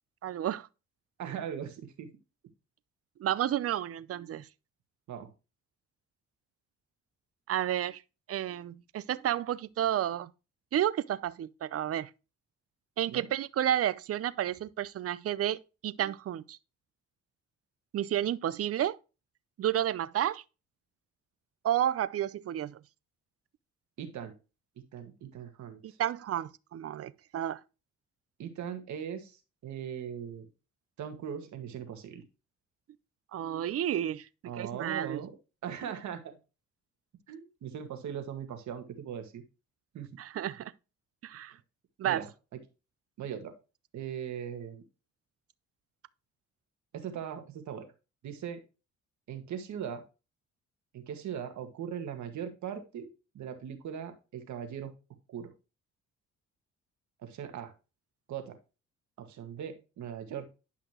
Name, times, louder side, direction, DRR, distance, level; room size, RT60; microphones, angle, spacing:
voice 1, 0.2-0.7 3.2-4.5 7.5-8.0 8.3-10.3 10.7-12.1 13.0-16.6 17.9-19.0 19.6-20.4 21.6-22.8 25.8-27.6 33.3-34.3 34.6-35.2 40.2-40.7 41.2-41.5 42.0-42.2, right 11 dB, 50° right, 0.6 m, -31 dB
voice 2, 1.2-2.1 5.1-5.3 13.1-13.3 24.0-24.3 24.9-26.0 28.4-30.5 31.0-32.2 34.4-35.3 35.6-36.4 37.3-39.4 39.9-40.1 42.0-42.6 43.2-43.5 43.9-44.8 46.9-47.9 48.2-48.6 49.3-50.0 50.9-54.9 55.3-55.5 57.2-57.7 58.3-58.6 59.2-60.5, right 8 dB, 70° right, 1.8 m, -39 dB
10.0 x 5.8 x 3.0 m
cardioid pair, 90°, 30 cm